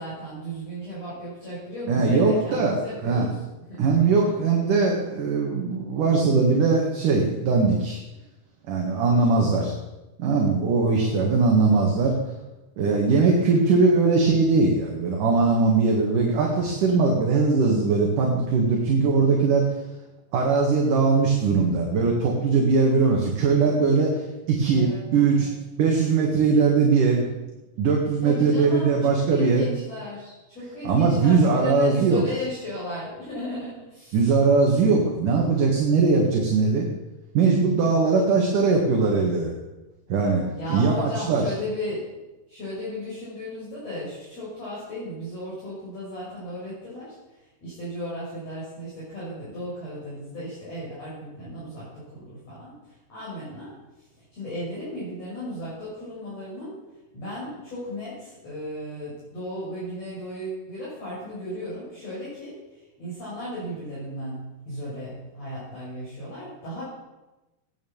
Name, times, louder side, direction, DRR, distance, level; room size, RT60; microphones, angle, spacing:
voice 1, 0.0-3.4 3.7-4.4 9.0-9.5 10.9-11.7 13.1-13.3 24.7-25.5 28.2-34.2 40.5-42.1 42.5-47.2 47.6-52.7 53.1-53.8 54.3-56.8 57.1-62.6 63.0-66.8, equal, 35° left, -9 dB, 7.0 m, -35 dB
voice 2, 1.9-3.3 3.8-8.0 8.7-9.7 10.2-12.2 12.8-19.7 20.3-25.5 25.8-27.2 27.8-29.7 30.8-32.2 34.1-36.9 37.3-39.5 40.1-40.4 40.7-41.4, right 4 dB, 55° right, 0 dB, 3.0 m, -20 dB
16.5 x 10.5 x 7.2 m, 1.1 s
omnidirectional pair, 5.0 m